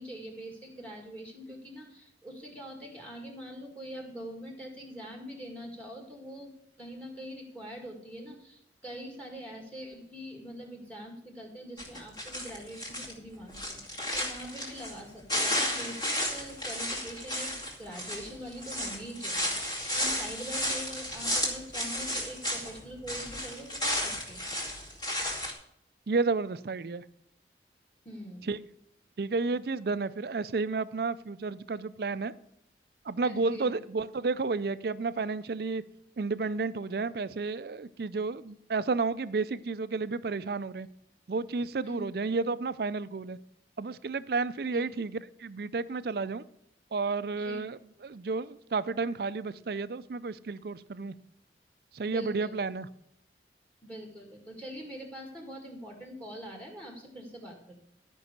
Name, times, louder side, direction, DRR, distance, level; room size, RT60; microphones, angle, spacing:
voice 1, 0.0-6.5 6.8-24.5 28.0-28.5 33.2-33.8 41.8-42.1 44.7-44.9 47.3-47.6 52.0-52.7 53.8-57.8, equal, 10° left, 1 dB, 2.0 m, -43 dB
sound 1, 11.8-13.1 13.5-15.0 15.3-22.8 23.0-25.5, equal, 25° left, 2.4 m, -33 dB
voice 2, 26.1-27.0 28.4-28.6 29.2-32.3 33.0-35.8 36.2-40.9 41.3-43.4 43.8-46.4 46.9-51.1 51.9-52.9, right 4 dB, 55° right, 15 dB, 0.4 m, -31 dB
12.5 x 5.4 x 6.7 m, 0.73 s
head